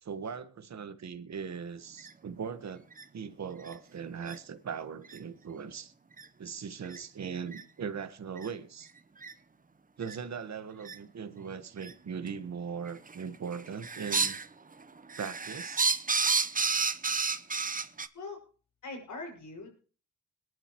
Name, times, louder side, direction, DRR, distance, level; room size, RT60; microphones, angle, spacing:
voice 1, 0.0-2.8 3.1-5.9 6.4-8.9 10.0-14.4 15.2-15.8, right 6 dB, 60° right, 1.5 m, -39 dB
sound 1, 2.0-2.1 2.9-3.0 3.7-3.8 4.3-4.4 5.0-5.2 6.2-6.3 6.8-7.0 7.5-7.6 8.4-8.5 9.2-9.3 10.0-10.1 10.8-11.0 11.8-11.9 12.9-13.2 13.5-14.5 14.8-18.1, right 4 dB, 25° right, 0.9 m, -30 dB
voice 2, 18.8-19.7, left 3 dB, 75° left, 6.2 m, -41 dB
22.0 x 11.0 x 3.1 m
cardioid pair, 60°, 31 cm